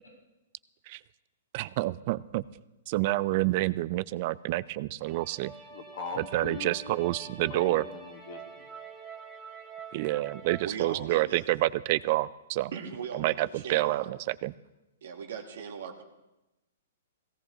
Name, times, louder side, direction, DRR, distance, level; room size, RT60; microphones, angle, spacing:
voice 1, 1.5-2.4 2.9-5.5 6.3-7.9 9.9-12.7 13.1-14.5, right 18 dB, 45° right, 18 dB, 0.3 m, -28 dB
sound 1, 5.1-10.7, right 5 dB, 5° left, 1.9 m, -46 dB
voice 2, 5.7-8.7, left 5 dB, 55° left, 6 dB, 1.6 m, -41 dB
voice 3, 10.6-11.4 12.7-14.1 15.0-16.0, right 6 dB, 70° right, 4 dB, 1.4 m, -39 dB
17.0 x 16.0 x 3.0 m, 0.98 s
hypercardioid pair, 140°, 0 cm